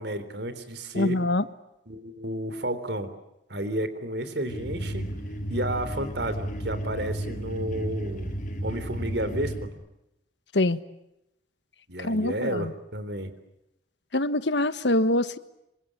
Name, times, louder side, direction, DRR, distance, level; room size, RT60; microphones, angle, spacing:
voice 1, 0.0-1.2 1.9-3.1 3.5-5.1 5.5-8.3 8.6-9.7 11.9-13.3, right 1 dB, 65° right, 12 dB, 3.7 m, -31 dB
voice 2, 0.9-1.4 10.5-10.8 12.0-12.7 14.1-15.4, left 1 dB, 70° left, 14 dB, 1.4 m, -24 dB
sound 1, 4.5-9.7, right 1 dB, 45° left, 4.7 m, -33 dB
27.0 x 24.5 x 8.8 m, 0.87 s
head